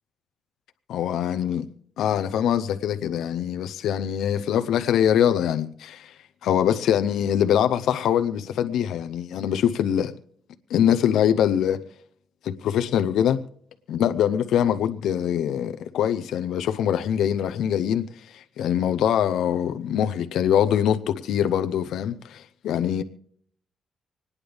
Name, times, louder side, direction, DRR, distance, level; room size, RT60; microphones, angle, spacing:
voice 1, 0.9-1.7 2.0-6.1 6.4-10.1 10.7-11.8 12.4-13.4 13.9-23.0, left 9 dB, 85° left, 0.6 m, -23 dB
26.5 x 9.7 x 3.5 m
cardioid pair, 125°, 0 cm